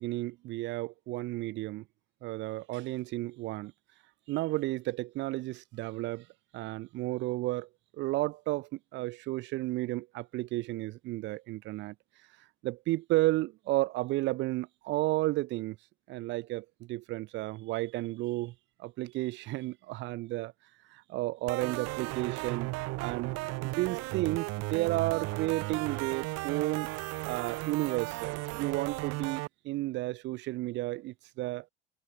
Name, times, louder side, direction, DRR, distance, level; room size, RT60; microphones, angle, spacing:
voice 1, 0.0-1.8 2.2-3.7 4.3-6.3 6.5-7.7 8.0-11.9 12.6-15.8 16.1-18.5 18.8-20.5 20.9-22.7 23.0-23.3 23.6-26.9 27.2-31.7, right 18 dB, 40° right, 0.4 m, -32 dB
sound 1, 21.5-29.5, right 23 dB, 60° right, 1.4 m, -35 dB
hypercardioid pair, 70°, 29 cm